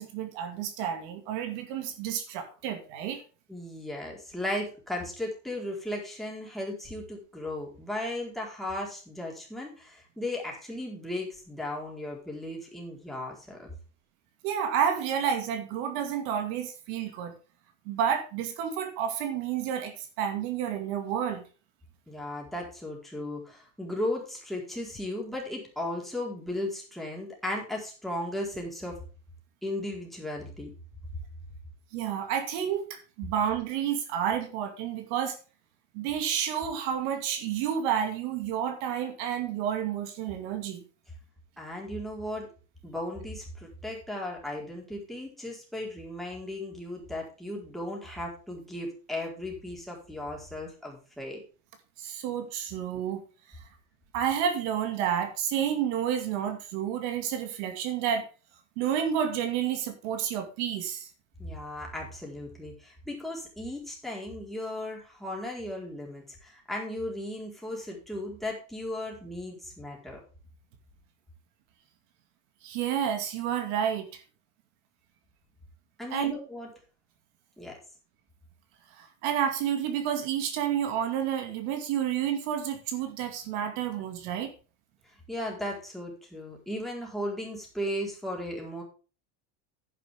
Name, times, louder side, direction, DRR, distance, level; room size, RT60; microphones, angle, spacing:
voice 1, 0.0-3.2 14.4-17.4 17.9-21.4 31.9-35.4 35.9-40.8 52.0-53.2 54.1-58.3 58.8-61.1 72.6-74.2 76.1-76.5 79.0-84.5, right 9 dB, 70° right, 7 dB, 2.5 m, -30 dB
voice 2, 3.5-13.7 22.1-28.9 29.6-30.7 41.6-42.5 42.8-51.4 61.4-70.2 76.0-76.7 77.6-77.8 85.3-88.8, left 1 dB, ahead, -2 dB, 4.3 m, -36 dB
10.5 x 10.5 x 3.6 m, 0.36 s
cardioid pair, 155°, 34 cm